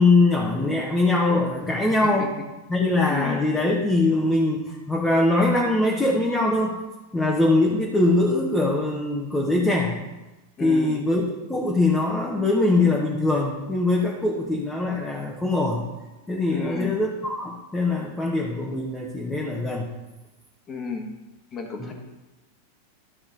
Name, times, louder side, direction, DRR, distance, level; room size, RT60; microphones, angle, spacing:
voice 1, 0.0-2.3 2.7-6.8 7.1-10.0 10.6-15.9 16.3-19.9 21.8-21.9, left 2 dB, 10° left, -3 dB, 1.3 m, -22 dB
voice 2, 3.1-3.4 10.6-11.0 16.5-17.0 20.7-21.0 21.5-21.9, left 4 dB, 25° left, 2 dB, 1.7 m, -32 dB
12.5 x 5.8 x 4.1 m, 1.1 s
figure-of-eight pair, 90°, 0 cm